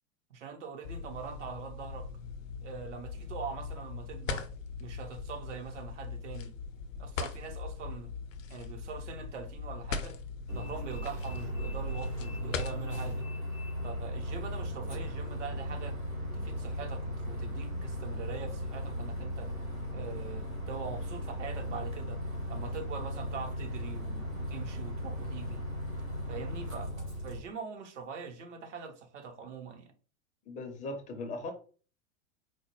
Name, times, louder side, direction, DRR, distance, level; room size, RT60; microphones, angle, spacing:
voice 1, 0.3-2.1 2.6-4.5 4.8-6.5 7.0-8.1 8.5-10.2 10.5-13.3 13.8-16.0 16.3-19.5 19.9-22.2 22.5-25.6 26.3-29.9, right 5 dB, 65° right, 0.8 m, -43 dB
sound 1, 0.8-13.1, left 5 dB, 75° left, 0.6 m, -40 dB
Bus, 10.5-27.4, equal, 90° right, 1.8 m, -37 dB
voice 2, 30.5-31.5, left 2 dB, 20° left, 0.5 m, -38 dB
4.4 x 2.1 x 3.0 m
figure-of-eight pair, 90°, 40 cm